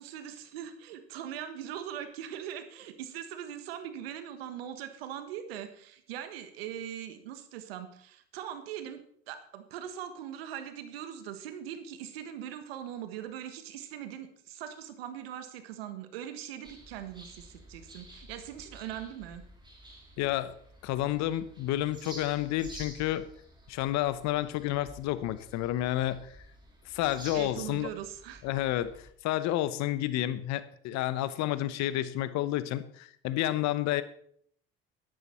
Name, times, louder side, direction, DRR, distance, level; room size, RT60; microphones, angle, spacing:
voice 1, 0.0-19.4 27.3-28.4, right 10 dB, 85° right, 9 dB, 1.5 m, -41 dB
sound 1, 16.6-29.1, right 1 dB, 15° right, 4.5 m, -51 dB
voice 2, 20.2-20.5 20.8-23.2 23.7-26.3 26.8-27.9 28.4-34.0, left 14 dB, 65° left, 15 dB, 1.1 m, -30 dB
12.5 x 11.5 x 4.4 m, 0.62 s
hypercardioid pair, 65°, 29 cm